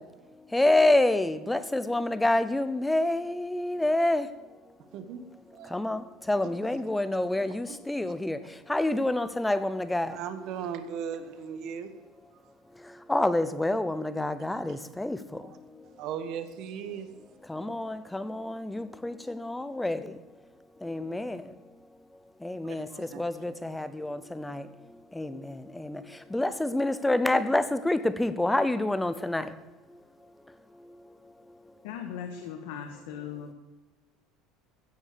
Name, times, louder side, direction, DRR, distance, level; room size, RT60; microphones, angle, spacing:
voice 1, 0.5-4.3 5.7-6.0 6.3-8.4 8.7-10.1 13.1-15.2 17.5-20.0 20.8-21.4 22.4-24.6 25.2-25.3 25.8-26.0 26.3-29.4, left 1 dB, 5° left, 12 dB, 0.7 m, -27 dB
voice 2, 4.9-5.2 5.5-5.8 7.7-7.8 10.1-11.9 14.7-14.8 15.4-15.6 16.0-17.1 20.8-21.0 22.6-23.2, right 8 dB, 45° right, 10 dB, 1.4 m, -37 dB
voice 3, 31.8-33.5, left 8 dB, 85° left, 3 dB, 1.7 m, -38 dB
16.0 x 7.1 x 6.8 m, 1.2 s
cardioid pair, 160°, 0 cm